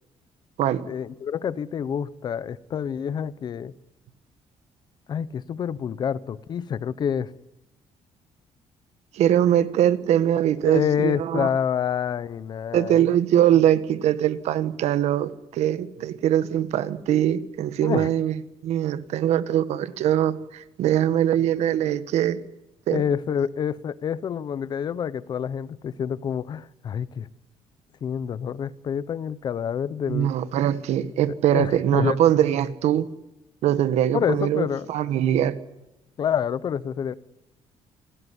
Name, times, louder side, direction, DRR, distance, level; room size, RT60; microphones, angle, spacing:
voice 1, 0.9-3.7 5.1-7.3 10.6-13.0 17.8-18.1 22.9-27.3 28.0-30.3 31.5-32.2 34.1-34.9 36.2-37.1, left 8 dB, 40° left, 18 dB, 0.8 m, -27 dB
voice 2, 9.1-11.5 12.7-22.4 22.9-23.0 30.1-33.1 33.6-35.6, right 11 dB, 75° right, 13 dB, 1.6 m, -22 dB
28.5 x 17.0 x 9.9 m, 0.95 s
cardioid pair, 180°, 11 cm